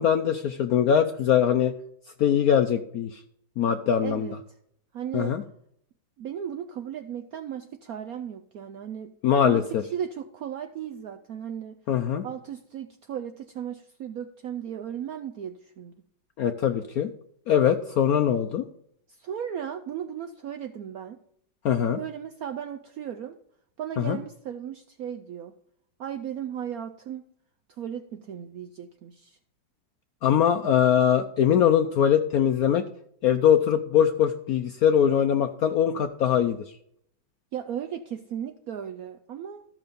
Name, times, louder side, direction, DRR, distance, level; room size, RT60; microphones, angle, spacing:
voice 1, 0.0-1.7 2.2-3.2 3.6-4.3 5.1-5.4 9.2-9.8 11.9-12.2 16.4-17.1 17.5-18.6 21.6-22.0 24.0-24.2 30.2-32.9 33.2-36.6, left 9 dB, 75° left, 8 dB, 0.8 m, -22 dB
voice 2, 4.0-4.4 4.9-5.4 6.2-9.1 9.4-9.6 9.9-11.8 12.2-15.9 19.1-21.2 22.0-23.4 23.8-25.5 26.0-27.2 27.8-29.4 37.5-39.6, right 9 dB, 75° right, 6 dB, 0.8 m, -36 dB
13.5 x 6.0 x 5.2 m, 0.70 s
omnidirectional pair, 2.1 m